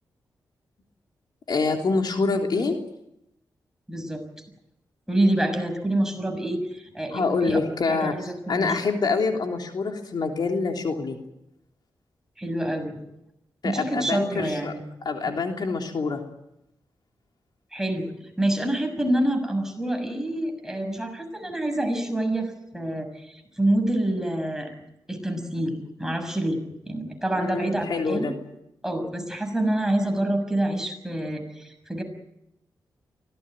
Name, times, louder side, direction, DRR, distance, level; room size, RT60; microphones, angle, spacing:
voice 1, 1.5-2.8 7.1-11.2 13.6-14.7 15.0-16.2 27.3-28.3, left 4 dB, 65° left, 3 dB, 3.4 m, -26 dB
voice 2, 3.9-4.5 5.1-7.6 7.9-8.7 12.4-13.0 13.6-14.8 17.7-18.1 18.4-24.7 25.1-28.3 28.8-32.0, right 1 dB, 5° right, 5 dB, 6.4 m, -27 dB
24.5 x 18.0 x 9.1 m, 0.85 s
cardioid pair, 80°, 8 cm